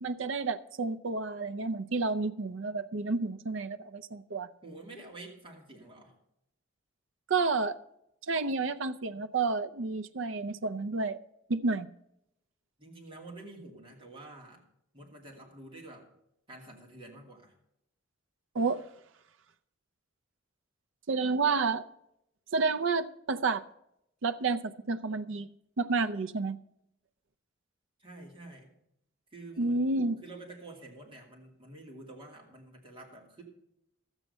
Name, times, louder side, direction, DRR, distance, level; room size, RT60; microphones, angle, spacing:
voice 1, 0.0-4.5 7.3-7.8 8.3-11.2 11.5-11.9 18.5-18.8 21.1-21.8 22.5-23.6 24.2-25.5 25.8-26.6 29.6-30.2, right 4 dB, 65° right, 0.6 m, -30 dB
voice 2, 4.6-6.1 12.8-14.6 14.9-16.1 16.5-17.5 28.0-28.7 29.3-29.8 30.2-33.4, right 2 dB, 25° right, 2.4 m, -48 dB
13.0 x 8.1 x 5.5 m
head